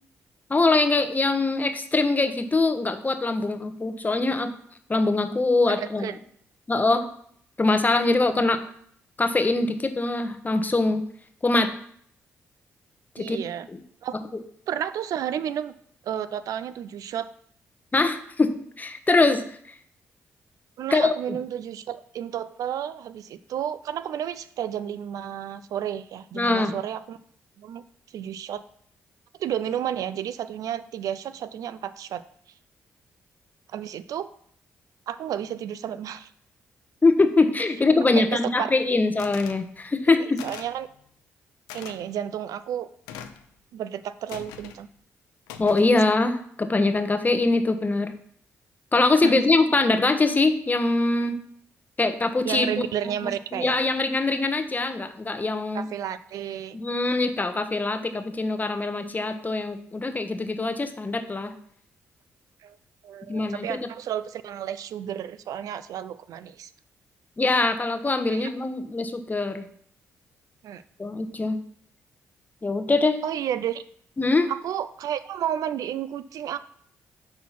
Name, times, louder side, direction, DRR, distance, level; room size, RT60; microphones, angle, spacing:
voice 1, 0.5-4.5 4.9-6.1 6.7-7.0 7.6-8.6 9.2-11.0 11.4-11.7 13.2-13.4 17.9-19.4 20.9-21.4 26.3-26.7 37.0-40.4 45.6-48.1 48.9-51.4 52.0-52.8 53.5-55.8 56.7-61.5 63.3-63.8 67.4-69.7 71.0-71.6 72.6-73.2 74.2-74.5, left 3 dB, 25° left, 8 dB, 0.9 m, -23 dB
voice 2, 5.7-6.2 13.2-13.7 14.0-14.2 14.7-15.7 16.0-17.3 20.8-27.2 27.6-27.8 28.1-28.6 29.4-32.2 33.7-34.3 35.1-36.3 38.2-38.7 40.4-40.9 41.7-42.9 43.7-44.9 49.2-49.5 52.4-53.8 55.7-56.8 62.6-62.8 63.0-66.7 68.3-68.5 70.6-70.8 73.2-73.8 74.5-76.6, right 10 dB, 70° right, 13 dB, 0.4 m, -31 dB
sound 1, 39.2-39.6 40.4-40.8 41.7-42.0 43.1-43.4 44.3-44.8 45.5-45.9, left 9 dB, 90° left, 0.5 m, -41 dB
5.7 x 4.2 x 5.8 m, 0.64 s
supercardioid pair, 50°, 6 cm